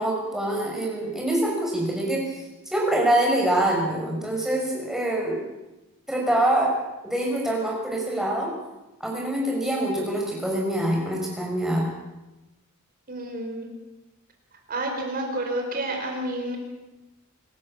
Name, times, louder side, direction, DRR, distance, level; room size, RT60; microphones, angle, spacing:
voice 1, 0.0-5.4 6.1-6.7 7.0-8.5 9.0-11.9, right 1 dB, ahead, -2 dB, 6.2 m, -25 dB
voice 2, 13.1-13.7 14.7-16.6, right 1 dB, 40° right, 2 dB, 4.4 m, -29 dB
26.5 x 13.5 x 7.3 m, 1.0 s
head